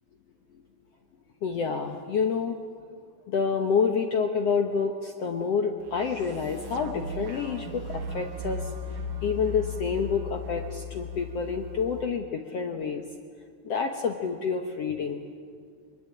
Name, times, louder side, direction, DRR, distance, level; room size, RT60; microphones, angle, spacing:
voice 1, 1.4-2.6 3.3-8.7 9.2-13.0 13.6-15.2, left 5 dB, 70° left, 4 dB, 1.5 m, -28 dB
Abduction Single Bass, 5.8-12.0, left 3 dB, 60° right, 2.8 m, -37 dB
24.0 x 21.5 x 9.9 m, 2.1 s
omnidirectional pair, 4.5 m